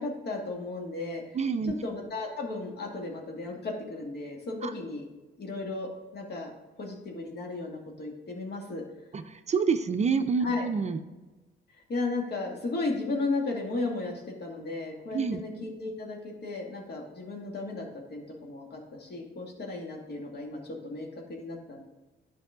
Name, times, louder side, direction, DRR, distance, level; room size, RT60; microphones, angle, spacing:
voice 1, 0.0-1.4 1.6-5.1 5.4-6.5 6.8-8.8 10.4-10.7 11.7-21.8, left 3 dB, 55° left, 1 dB, 2.0 m, -35 dB
voice 2, 1.3-1.7 4.6-4.7 9.1-11.0 15.1-15.4, right 5 dB, 35° right, 9 dB, 0.5 m, -27 dB
10.5 x 5.4 x 3.7 m, 1.1 s
cardioid pair, 90°, 20 cm